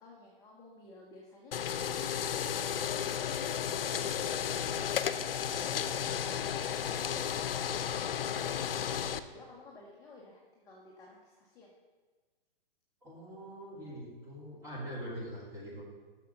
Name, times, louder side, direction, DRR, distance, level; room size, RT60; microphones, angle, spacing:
voice 1, 0.0-3.1 9.1-11.7, left 2 dB, 10° left, -4 dB, 0.9 m, -55 dB
sound 1, 1.5-9.2, left 9 dB, 75° left, 0.6 m, -33 dB
voice 2, 13.0-15.8, equal, 10° right, -7 dB, 2.9 m, -43 dB
7.4 x 6.3 x 5.8 m, 1.4 s
hypercardioid pair, 150°, 29 cm